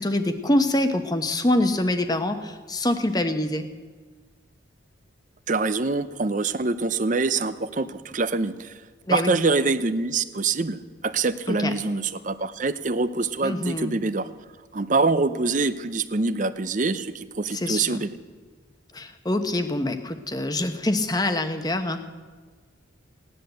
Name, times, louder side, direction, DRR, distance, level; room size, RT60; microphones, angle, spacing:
voice 1, 0.0-3.7 9.1-9.3 11.5-11.7 13.4-13.9 17.5-18.0 18.9-22.0, left 1 dB, 20° left, 8 dB, 1.0 m, -25 dB
voice 2, 5.5-8.8 9.1-10.8 11.0-14.3 14.7-18.1, right 3 dB, 40° right, 13 dB, 0.6 m, -25 dB
17.0 x 10.5 x 7.9 m, 1.5 s
head